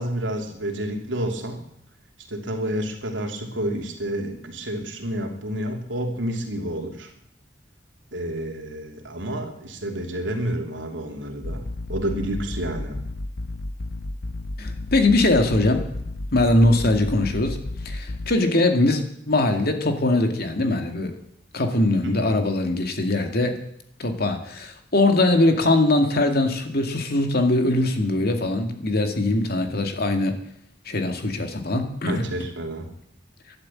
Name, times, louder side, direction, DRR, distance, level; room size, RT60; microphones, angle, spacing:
voice 1, 0.0-1.6 2.3-7.1 8.1-13.0 22.0-22.4 32.1-32.9, right 1 dB, 90° right, 2 dB, 3.0 m, -29 dB
sound 1, 11.4-18.3, left 2 dB, 75° left, 0.9 m, -32 dB
voice 2, 14.6-15.9 16.3-17.6 17.8-21.1 21.5-23.6 24.0-30.4 30.9-32.3, left 2 dB, 55° left, 6 dB, 2.2 m, -21 dB
12.0 x 11.5 x 8.6 m, 0.73 s
head